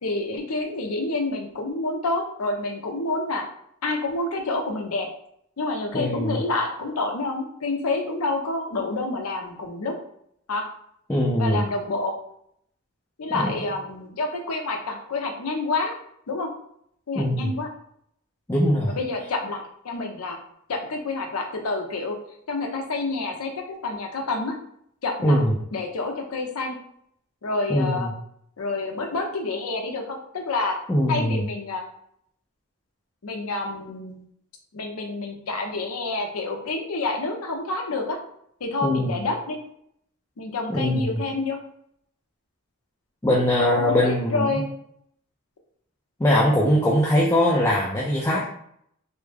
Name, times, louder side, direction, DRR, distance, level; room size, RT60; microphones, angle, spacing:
voice 1, 0.0-3.4 3.8-5.1 5.6-9.9 10.5-10.6 11.4-12.1 13.2-15.9 16.3-16.5 17.1-17.7 18.9-20.4 20.7-22.2 22.5-24.5 25.0-25.4 25.7-26.7 27.4-28.1 28.6-30.8 31.1-31.8 33.2-34.2 34.7-38.2 38.6-39.6 40.4-41.6 43.5-44.7, left 3 dB, 85° left, 2 dB, 0.6 m, -28 dB
voice 2, 5.9-6.4 11.1-11.6 13.3-13.5 17.2-17.5 18.5-18.9 25.2-25.5 27.7-28.1 30.9-31.4 38.8-39.2 40.7-41.2 43.2-44.6 46.2-48.4, equal, 10° left, -4 dB, 0.4 m, -21 dB
3.3 x 2.0 x 3.2 m, 0.70 s
head